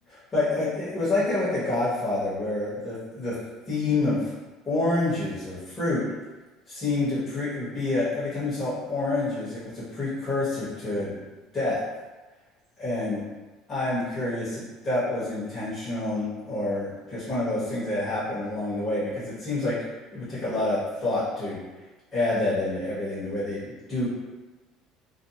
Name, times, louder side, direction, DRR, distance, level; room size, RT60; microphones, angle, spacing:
voice 1, 0.1-3.3 3.7-4.2 4.6-6.0 6.7-11.2 11.5-11.8 12.8-13.2 13.7-19.8 20.1-21.6 22.1-24.1, left 2 dB, 25° left, -12 dB, 1.1 m, -28 dB
2.6 x 2.0 x 2.7 m, 1.2 s
supercardioid pair, 115°, 0 cm